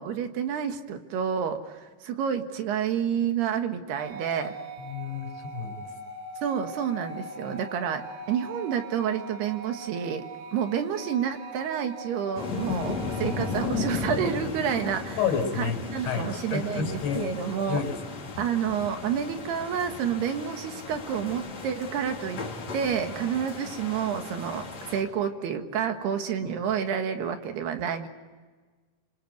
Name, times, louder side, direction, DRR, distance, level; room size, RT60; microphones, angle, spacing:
voice 1, 0.0-4.6 6.4-8.0 8.3-10.2 10.5-15.2 15.6-17.8 18.4-22.4 22.7-28.1, right 8 dB, 70° right, 6 dB, 3.5 m, -29 dB
sound 1, 3.9-13.7, right 2 dB, 90° right, 4.1 m, -41 dB
voice 2, 4.8-5.8 13.2-13.4 15.2-17.2 17.7-18.0, left 6 dB, 85° left, 4 dB, 6.8 m, -30 dB
sound 2, 12.3-25.0, left 4 dB, 40° left, 3.8 m, -35 dB
27.0 x 25.0 x 8.0 m, 1.4 s
omnidirectional pair, 5.1 m